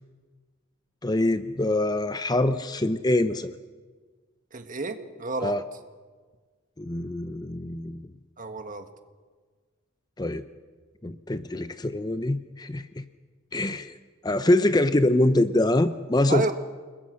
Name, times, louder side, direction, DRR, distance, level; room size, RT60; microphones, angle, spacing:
voice 1, 1.0-3.5 5.4-5.6 6.8-8.0 10.2-10.4 11.0-13.0 13.5-13.9 14.2-16.5, left 1 dB, 20° left, 11 dB, 0.6 m, -24 dB
voice 2, 4.5-5.5 8.4-8.8 16.3-16.5, right 3 dB, 40° right, 8 dB, 1.6 m, -30 dB
29.5 x 21.0 x 6.3 m, 1.5 s
head